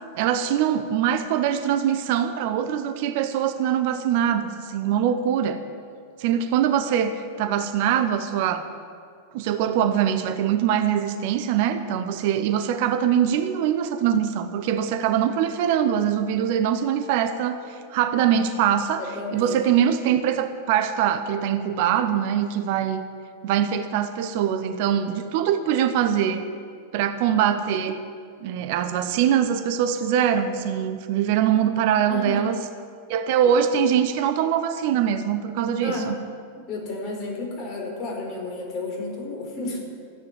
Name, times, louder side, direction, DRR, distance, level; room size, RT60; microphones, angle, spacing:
voice 1, 0.1-5.6 6.2-8.7 9.3-23.0 23.4-26.4 26.9-28.0 28.4-32.6 33.1-36.2, right 9 dB, 50° right, 10 dB, 0.9 m, -23 dB
voice 2, 19.0-19.6 32.1-32.5 33.4-33.5 35.8-36.1 36.7-39.8, left 2 dB, 35° left, 0 dB, 4.8 m, -32 dB
14.0 x 9.6 x 9.5 m, 2.2 s
figure-of-eight pair, 90°, 0 cm